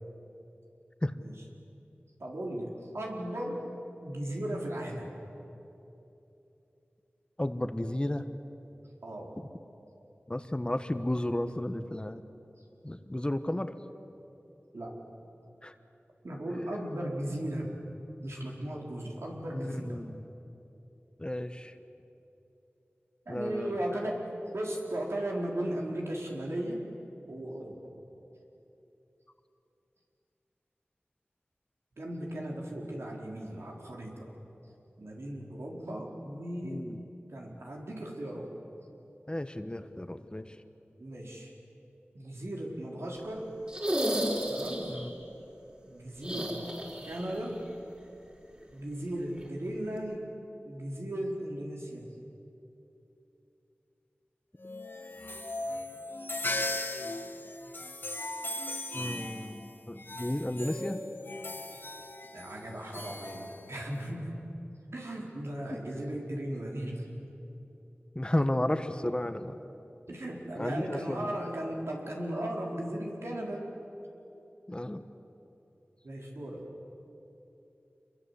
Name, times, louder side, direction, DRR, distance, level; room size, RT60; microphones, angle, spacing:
voice 1, 2.2-3.7 4.0-5.1 9.0-9.3 14.7-15.0 16.2-17.8 18.2-20.0 23.3-26.8 27.2-27.8 32.0-34.3 35.0-36.9 37.3-38.5 41.0-41.5 42.1-43.5 44.5-44.9 45.8-46.6 47.1-47.6 48.7-50.3 50.6-52.1 62.3-64.4 64.9-67.1 70.1-73.7 76.0-76.7, right 1 dB, 85° right, -1 dB, 4.5 m, -36 dB
voice 2, 7.4-8.3 10.3-12.2 12.8-13.7 15.6-15.7 19.5-20.2 21.2-21.7 23.3-23.8 36.6-37.0 39.3-40.6 44.9-45.1 58.9-61.0 65.7-65.8 68.1-69.6 70.6-71.3 74.7-75.0, left 1 dB, 20° left, 10 dB, 1.2 m, -33 dB
sound 1, 43.7-45.1 46.2-47.4 47.6-47.7 49.4-49.5, equal, 25° right, 4.9 m, -32 dB
sound 2, 54.6-64.1, left 2 dB, 55° left, 1.9 m, -38 dB
27.0 x 22.5 x 8.4 m, 2.9 s
wide cardioid pair, 65°, 4 cm